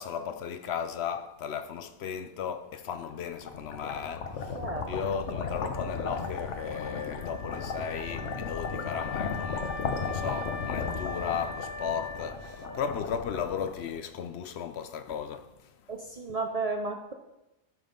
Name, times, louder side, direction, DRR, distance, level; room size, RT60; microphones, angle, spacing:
voice 1, 0.0-9.7 10.0-15.7, left 7 dB, 70° left, 0.8 m, -35 dB
sound 1, 3.1-14.3, left 5 dB, 85° left, 1.2 m, -35 dB
voice 2, 4.5-4.9 15.9-17.1, right 3 dB, 45° right, 0.5 m, -33 dB
Wind instrument woodwind instrument, 5.7-13.3, left 4 dB, 15° left, 0.7 m, -41 dB
12.0 x 5.3 x 3.8 m
omnidirectional pair, 1.2 m